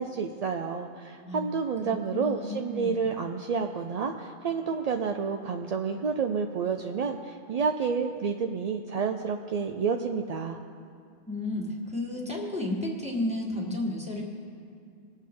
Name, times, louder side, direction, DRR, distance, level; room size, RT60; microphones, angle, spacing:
voice 1, 0.0-10.6, right 5 dB, 55° right, 4 dB, 0.4 m, -30 dB
voice 2, 1.9-3.0 11.3-14.2, left 1 dB, 5° right, -3 dB, 1.9 m, -32 dB
21.0 x 7.2 x 3.8 m, 2.4 s
omnidirectional pair, 1.2 m